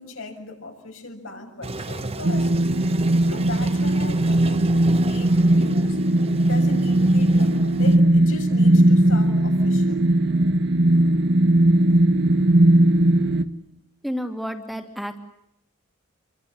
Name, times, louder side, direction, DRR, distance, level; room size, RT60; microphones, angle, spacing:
voice 1, 0.0-2.5 3.3-6.0 6.4-10.0, left 2 dB, 65° left, 3 dB, 7.2 m, -37 dB
Toilet flush, 1.6-8.0, right 2 dB, 30° right, 1.2 m, -34 dB
sound 1, 2.2-13.4, right 1 dB, 50° right, 1.6 m, -18 dB
voice 2, 14.0-15.2, equal, ahead, 5 dB, 2.8 m, -31 dB
28.5 x 24.5 x 8.1 m, 0.79 s
head